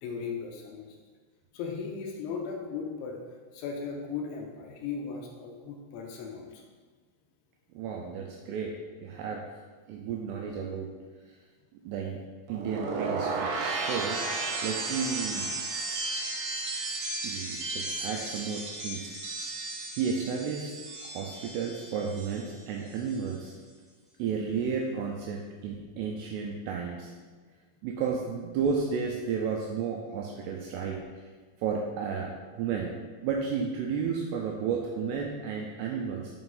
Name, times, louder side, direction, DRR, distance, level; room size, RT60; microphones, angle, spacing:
voice 1, 0.0-0.9 1.5-3.2 3.5-6.6, left 5 dB, 85° left, 1 dB, 3.0 m, -37 dB
voice 2, 7.7-8.7 9.0-9.4 9.9-10.9 11.7-12.2 12.5-14.3 14.6-15.5 17.2-19.2 19.9-20.7 21.0-23.5 24.2-27.1 27.8-31.3 31.6-32.9 33.2-36.4, right 6 dB, 90° right, 0 dB, 2.4 m, -32 dB
sound 1, 12.5-22.6 22.9-23.3, right 3 dB, 75° right, 2.3 m, -34 dB
7.8 x 4.8 x 3.9 m, 1.4 s
omnidirectional pair, 5.4 m